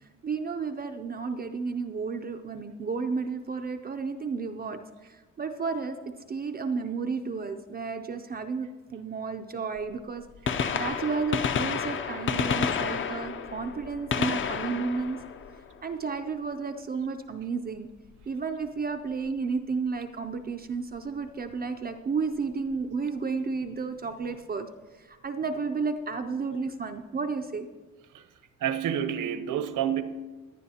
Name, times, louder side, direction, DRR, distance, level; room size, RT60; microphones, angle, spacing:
voice 1, 0.0-6.0 6.3-10.2 10.7-15.2 15.8-17.9 18.3-24.7 24.9-27.7, right 4 dB, 30° right, 0.4 m, -32 dB
Gunshot gunfire, 9.8-9.9 10.3-16.2 18.1-18.3 19.3-19.4 21.0-21.1 22.4-22.5 22.7-22.8, left 6 dB, 40° left, 0.5 m, -30 dB
voice 2, 28.6-30.0, right 9 dB, 70° right, 0.8 m, -28 dB
17.5 x 11.0 x 2.8 m
wide cardioid pair, 175°, 32 cm